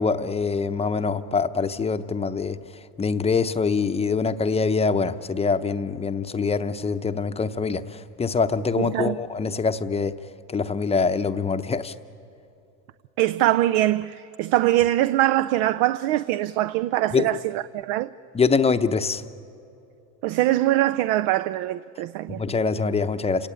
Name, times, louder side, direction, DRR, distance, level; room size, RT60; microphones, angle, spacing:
voice 1, 0.0-2.6 3.0-10.1 10.5-11.9 17.1-17.3 18.3-19.2 22.4-23.5, left 5 dB, 15° left, 0.7 m, -24 dB
voice 2, 8.8-9.2 13.2-18.1 20.2-22.4, right 15 dB, 70° right, 0.6 m, -23 dB
28.5 x 17.5 x 9.0 m
supercardioid pair, 120°, 40 cm